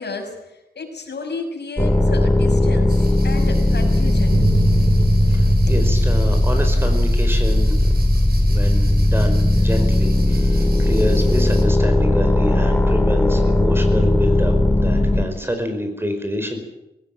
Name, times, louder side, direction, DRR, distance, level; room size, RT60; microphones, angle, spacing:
voice 1, 0.0-4.4 5.7-5.8, left 3 dB, 80° left, 3 dB, 6.0 m, -32 dB
sound 1, 1.8-15.3, left 1 dB, 5° left, 2.3 m, -17 dB
sound 2, 2.9-11.6, right 3 dB, 65° right, 5.5 m, -40 dB
Bass guitar, 4.3-10.6, right 6 dB, 90° right, 2.3 m, -30 dB
voice 2, 5.3-7.9 8.5-16.6, equal, 15° right, 6 dB, 5.1 m, -27 dB
19.5 x 18.5 x 9.1 m, 0.89 s
wide cardioid pair, 85°, 17 cm